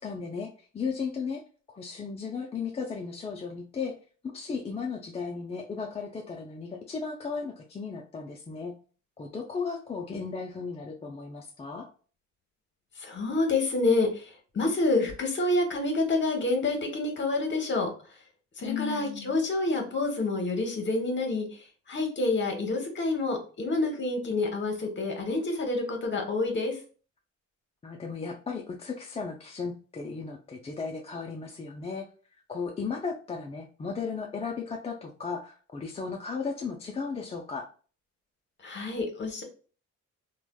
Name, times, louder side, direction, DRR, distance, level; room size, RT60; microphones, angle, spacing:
voice 1, 0.0-1.4 1.7-3.9 4.2-8.7 9.2-11.9 18.6-19.4 27.8-32.0 32.5-37.7, left 5 dB, 20° left, 0 dB, 0.4 m, -35 dB
voice 2, 13.0-17.9 18.6-21.5 21.9-26.8 38.6-39.4, left 2 dB, 40° left, 3 dB, 1.0 m, -28 dB
3.2 x 2.2 x 2.2 m, 0.39 s
cardioid pair, 90°, 30 cm